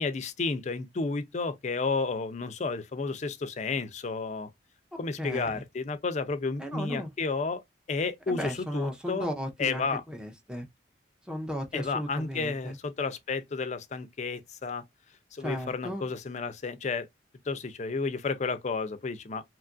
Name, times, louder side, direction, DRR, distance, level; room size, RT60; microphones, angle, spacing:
voice 1, 0.0-4.5 5.0-7.6 7.9-9.3 9.6-10.0 11.7-14.8 15.3-17.1 17.5-19.4, left 4 dB, 40° left, 0.4 m, -32 dB
voice 2, 4.9-5.6 6.6-7.1 8.3-10.7 11.3-12.8 15.4-16.1, equal, 5° right, 0.6 m, -35 dB
2.9 x 2.4 x 2.4 m
head